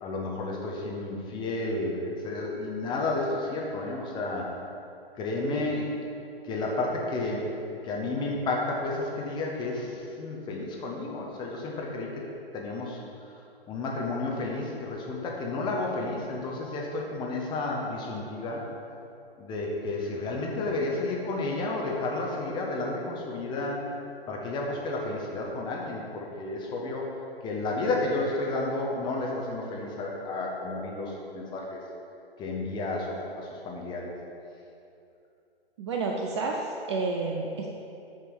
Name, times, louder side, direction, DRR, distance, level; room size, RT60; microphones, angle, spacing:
voice 1, 0.0-4.5 5.2-5.9 6.4-7.5 7.8-12.2 12.5-13.0 13.7-18.7 19.4-23.9 24.3-27.1 27.4-31.8 32.4-34.1, left 2 dB, 15° left, -2 dB, 0.8 m, -31 dB
voice 2, 35.8-37.7, right 3 dB, 30° right, 0 dB, 0.4 m, -30 dB
7.9 x 3.3 x 6.3 m, 2.7 s
hypercardioid pair, 130°, 31 cm